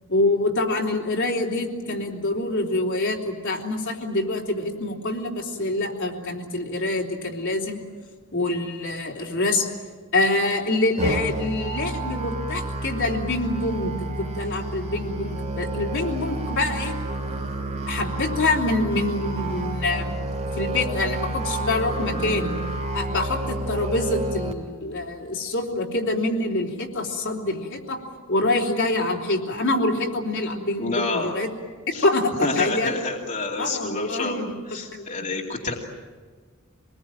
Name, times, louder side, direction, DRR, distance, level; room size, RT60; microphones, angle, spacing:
voice 1, 0.1-7.8 8.3-9.7 10.1-17.0 17.9-20.2 20.6-22.5 22.9-28.0 28.3-31.5 31.9-33.0 33.6-34.5 34.9-35.1, left 2 dB, 65° left, 0 dB, 3.5 m, -25 dB
Musical instrument, 11.0-24.5, right 1 dB, 35° right, 2.5 m, -30 dB
voice 2, 30.8-31.3 31.9-32.0 32.4-35.7, left 3 dB, 40° left, -2 dB, 2.7 m, -28 dB
26.0 x 20.5 x 9.0 m, 1.5 s
head